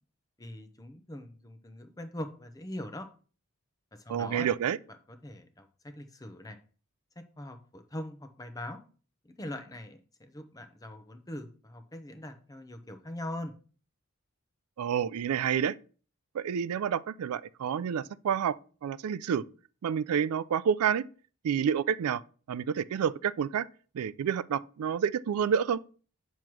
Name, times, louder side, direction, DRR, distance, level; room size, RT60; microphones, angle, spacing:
voice 1, 0.4-3.1 3.9-4.5 5.1-6.6 7.4-8.8 9.2-13.5, left 1 dB, 15° left, 0.7 m, -42 dB
voice 2, 4.1-4.8 14.8-15.8 16.3-19.4 19.8-21.0 21.4-22.2 22.5-23.7 23.9-25.8, right 8 dB, 85° right, 0.3 m, -29 dB
8.7 x 3.1 x 6.0 m
head